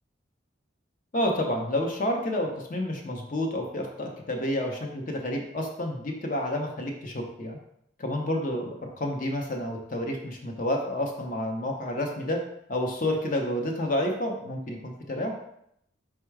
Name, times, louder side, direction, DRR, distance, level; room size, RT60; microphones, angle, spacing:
voice 1, 1.1-7.6 8.0-12.4 12.7-15.4, left 1 dB, 45° left, 2 dB, 0.7 m, -29 dB
4.6 x 2.2 x 4.6 m, 0.75 s
head